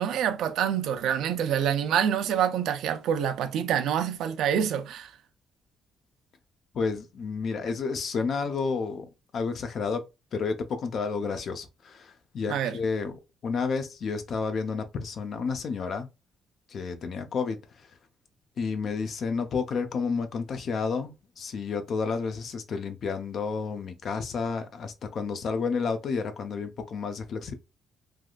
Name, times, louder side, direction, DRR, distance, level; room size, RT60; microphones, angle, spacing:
voice 1, 0.0-5.1 12.5-12.7, right 9 dB, 80° right, 0.4 m, -26 dB
voice 2, 6.7-10.0 10.3-13.2 13.4-16.1 16.7-17.9 18.6-27.5, left 5 dB, 60° left, 0.6 m, -31 dB
3.3 x 2.4 x 2.3 m
cardioid pair, 90°, 0 cm